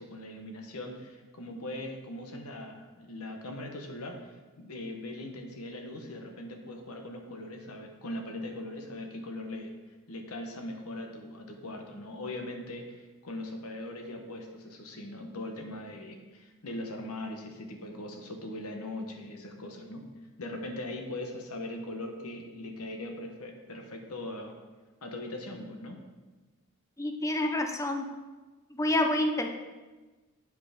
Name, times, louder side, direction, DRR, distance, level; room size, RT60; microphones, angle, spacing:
voice 1, 0.0-9.7 10.1-20.1 20.4-24.6 25.0-26.0, left 1 dB, 70° left, 4 dB, 1.1 m, -40 dB
voice 2, 27.0-28.0 28.8-29.5, left 1 dB, 15° left, 4 dB, 0.6 m, -28 dB
8.1 x 4.7 x 5.0 m, 1.2 s
head